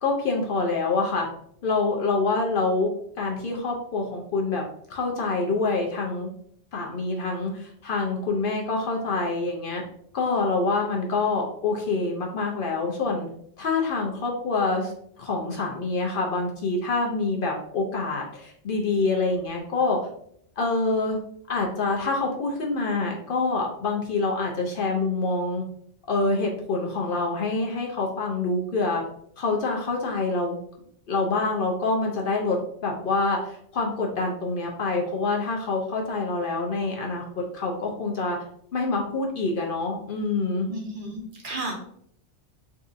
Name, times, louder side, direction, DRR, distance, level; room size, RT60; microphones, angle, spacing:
voice 1, 0.0-1.3 1.6-2.9 3.2-4.6 4.9-6.3 6.7-9.8 10.1-13.3 13.6-14.9 15.2-20.0 20.6-21.2 21.5-25.6 26.1-29.0 29.4-30.6 31.1-32.6 32.8-37.2 37.5-38.4 38.7-40.7, left 3 dB, 60° left, 0 dB, 0.7 m, -26 dB
voice 2, 40.7-41.8, right 2 dB, 55° right, 0 dB, 0.7 m, -33 dB
3.7 x 2.5 x 2.4 m, 0.67 s
omnidirectional pair, 1.2 m